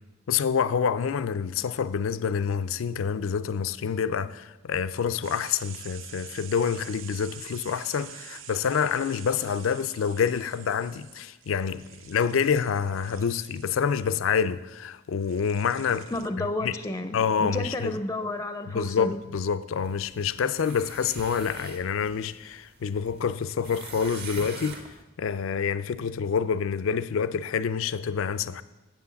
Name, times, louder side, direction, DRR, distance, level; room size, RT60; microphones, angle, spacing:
voice 1, 0.3-16.1 16.4-16.8 17.1-18.0 18.7-24.8 25.2-28.6, left 6 dB, 85° left, 0.4 m, -27 dB
sound 1, 5.2-14.3 15.2-16.3, right 11 dB, 75° right, 0.5 m, -47 dB
voice 2, 16.1-19.2, left 2 dB, 15° left, 0.4 m, -31 dB
sound 2, 19.8-25.0, right 4 dB, 55° right, 1.3 m, -44 dB
9.0 x 7.6 x 7.0 m
head